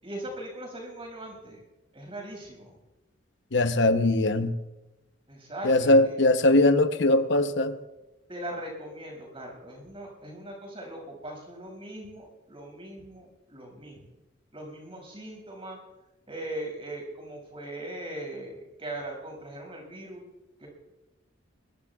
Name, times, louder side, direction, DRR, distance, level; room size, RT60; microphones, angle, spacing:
voice 1, 0.0-1.6 1.9-2.8 5.3-6.1 8.3-14.1 14.5-15.8 16.3-20.2 20.6-20.7, right 1 dB, 30° right, 6.2 m, -40 dB
voice 2, 3.5-4.6 5.6-7.8, left 2 dB, 65° left, 0.9 m, -21 dB
22.5 x 20.5 x 2.4 m
head